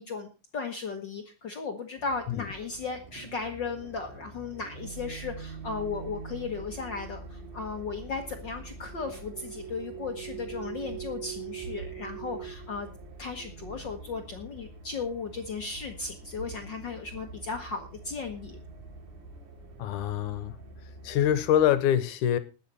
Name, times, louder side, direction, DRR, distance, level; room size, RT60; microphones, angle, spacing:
voice 1, 0.0-12.9 13.2-18.6, left 4 dB, 55° left, 1.3 m, -36 dB
sound 1, 2.0-21.7, right 5 dB, 70° right, 4.0 m, -43 dB
voice 2, 19.8-20.6 21.0-22.4, left 10 dB, 80° left, 2.4 m, -25 dB
20.0 x 7.4 x 4.1 m
omnidirectional pair, 3.6 m